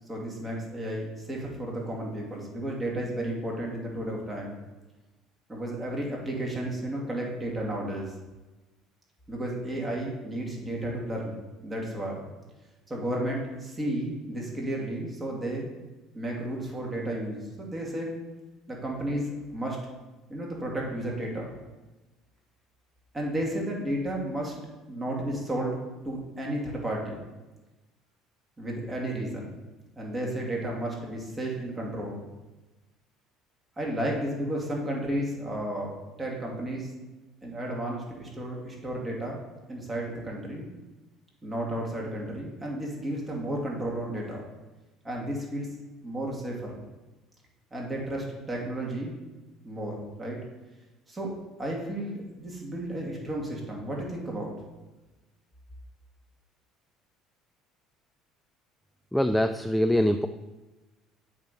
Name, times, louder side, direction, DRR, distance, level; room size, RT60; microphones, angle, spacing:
voice 1, 0.1-4.6 5.5-8.1 9.3-12.2 12.9-15.7 16.1-18.2 18.7-19.8 20.3-21.5 23.1-24.6 24.9-25.8 26.0-27.2 28.6-29.5 30.0-32.3 33.8-35.9 36.2-36.9 37.4-39.4 39.7-40.7 41.4-44.4 45.0-45.7 46.0-46.8 47.7-49.1 49.6-50.4 51.1-51.3 51.6-54.5, right 1 dB, 20° right, -2 dB, 2.4 m, -33 dB
voice 2, 59.1-60.3, equal, 5° left, 8 dB, 0.3 m, -23 dB
8.0 x 3.4 x 5.4 m, 1.1 s
supercardioid pair, 90°, 0 cm